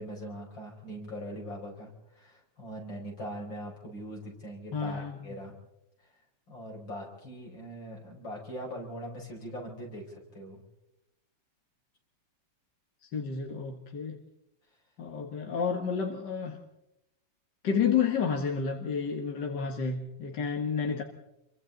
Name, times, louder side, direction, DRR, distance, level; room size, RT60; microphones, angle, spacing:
voice 1, 0.0-5.5 6.0-6.1 6.5-10.6, equal, 85° left, -1 dB, 6.1 m, -41 dB
voice 2, 4.7-5.3 13.0-14.2 15.0-16.6 17.6-21.0, left 6 dB, 65° left, 3 dB, 2.1 m, -30 dB
28.0 x 23.0 x 4.0 m, 0.86 s
omnidirectional pair, 2.0 m